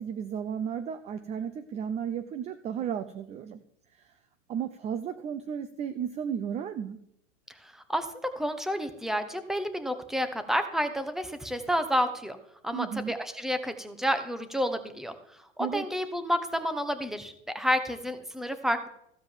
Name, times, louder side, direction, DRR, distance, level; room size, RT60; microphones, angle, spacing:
voice 1, 0.0-3.6 3.9-4.1 4.5-7.0 12.7-13.1 15.6-15.9, right 8 dB, 20° right, 12 dB, 0.5 m, -34 dB
voice 2, 7.6-8.1 8.4-12.4 12.6-15.1 15.6-18.9, equal, ahead, 9 dB, 1.0 m, -30 dB
15.0 x 5.1 x 7.3 m, 0.73 s
hypercardioid pair, 130°, 38 cm